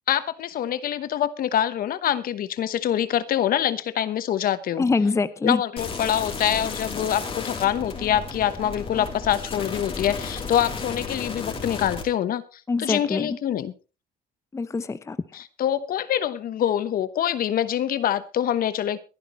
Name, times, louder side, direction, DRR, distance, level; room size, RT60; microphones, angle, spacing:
voice 1, 0.1-4.8 5.4-12.4 12.8-13.7 15.3-19.0, left 10 dB, 60° left, 14 dB, 1.1 m, -25 dB
voice 2, 4.8-5.6 12.7-13.4 14.5-15.2, left 4 dB, 15° left, 14 dB, 0.7 m, -24 dB
sound 1, 5.8-12.0, left 4 dB, 35° left, 3.4 m, -33 dB
22.5 x 11.0 x 3.1 m, 0.32 s
cardioid pair, 110°, 17 cm